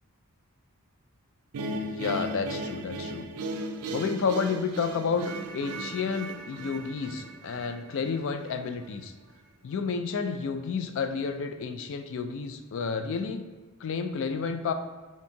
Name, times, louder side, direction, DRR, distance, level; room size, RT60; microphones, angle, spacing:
sound 1, 1.5-8.6, right 1 dB, 85° right, 0.4 m, -37 dB
voice 1, 1.7-3.3 3.9-9.1 9.6-13.4 13.8-14.7, left 5 dB, 60° left, 8 dB, 0.3 m, -31 dB
4.4 x 3.4 x 2.7 m, 1.3 s
head